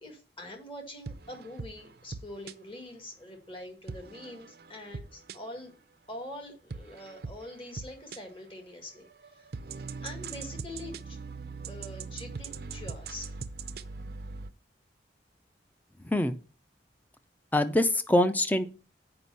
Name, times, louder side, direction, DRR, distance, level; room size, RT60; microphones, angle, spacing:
voice 1, 0.0-5.7 6.1-9.5 10.0-11.2 11.7-13.3, left 1 dB, 30° left, 3 dB, 1.9 m, -44 dB
sound 1, 1.1-2.5 3.9-5.7 6.7-8.2 8.9-14.5, right 4 dB, 60° right, 0.5 m, -41 dB
voice 2, 16.0-16.4 17.5-18.7, left 1 dB, 10° left, 11 dB, 0.5 m, -24 dB
7.8 x 5.2 x 5.5 m, 0.35 s
head